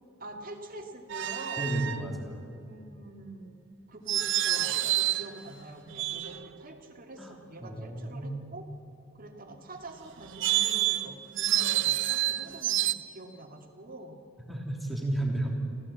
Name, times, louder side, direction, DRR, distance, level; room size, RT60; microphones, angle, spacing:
voice 1, 0.2-1.7 2.6-3.6 3.9-8.6 9.1-14.2, right 2 dB, 45° right, 3 dB, 2.2 m, -45 dB
sound 1, 1.1-2.0 4.1-5.3 5.9-6.6 10.2-12.9, right 13 dB, 65° right, 0.7 m, -28 dB
voice 2, 1.6-2.4 7.2-7.3 7.6-8.4 14.5-15.5, right 1 dB, ahead, 0 dB, 3.1 m, -32 dB
25.5 x 15.5 x 8.5 m, 2.6 s
head